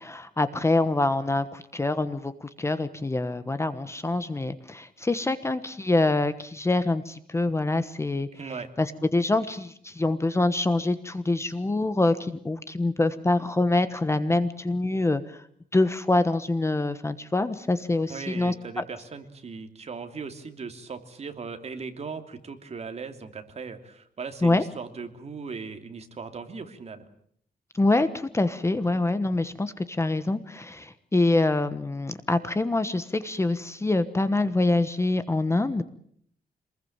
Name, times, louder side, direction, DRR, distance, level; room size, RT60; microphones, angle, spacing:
voice 1, 0.0-8.3 8.8-15.4 15.7-18.8 24.4-24.6 27.7-35.8, left 2 dB, 15° left, 12 dB, 1.2 m, -25 dB
voice 2, 8.3-8.7 18.1-27.0, right 5 dB, 40° right, 7 dB, 2.9 m, -38 dB
27.0 x 20.5 x 8.8 m, 0.64 s
wide cardioid pair, 155°, 16 cm